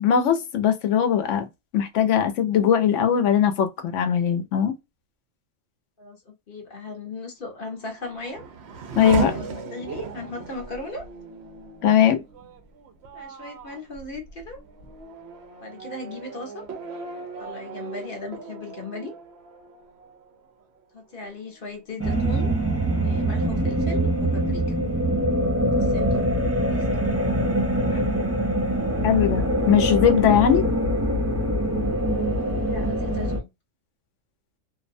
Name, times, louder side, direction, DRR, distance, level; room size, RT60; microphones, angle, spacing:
voice 1, 0.0-1.5 1.7-4.7 9.0-9.4 11.8-12.2 29.0-30.7, left 9 dB, 80° left, 1.0 m, -20 dB
voice 2, 6.0-8.4 9.3-11.1 13.1-14.6 15.6-16.7 17.4-19.1 20.9-22.5 23.0-24.8 25.6-26.3 26.7-26.9 27.8-28.1 32.7-33.5, left 3 dB, 50° left, 1.0 m, -37 dB
Race car auto racing / Accelerating revving vroom, 7.6-20.8 21.2-21.9, right 5 dB, 65° right, 0.9 m, -37 dB
sound 1, 22.0-33.4, right 1 dB, 15° right, 0.5 m, -23 dB
2.6 x 2.1 x 2.5 m
omnidirectional pair, 1.3 m